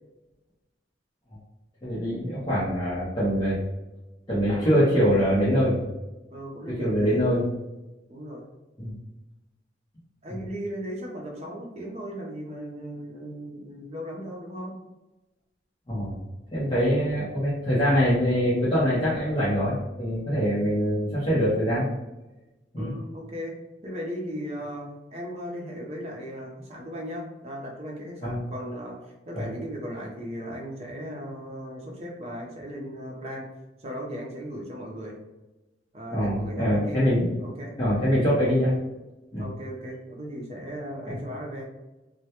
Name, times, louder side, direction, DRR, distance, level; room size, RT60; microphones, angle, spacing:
voice 1, 1.8-3.6 4.3-5.8 6.7-7.4 8.8-9.0 15.9-16.2 16.5-21.9 22.7-22.9 28.2-28.4 29.3-29.5 36.1-37.3 37.8-38.7 39.3-39.5 41.1-41.2, equal, 25° left, -10 dB, 0.6 m, -24 dB
voice 2, 4.6-5.3 6.3-7.2 8.1-8.5 10.2-14.8 22.7-23.6 23.8-33.5 33.8-35.2 35.9-37.0 37.4-37.9 39.4-41.6, equal, 35° right, -1 dB, 0.5 m, -37 dB
2.1 x 2.1 x 2.8 m, 1.1 s
head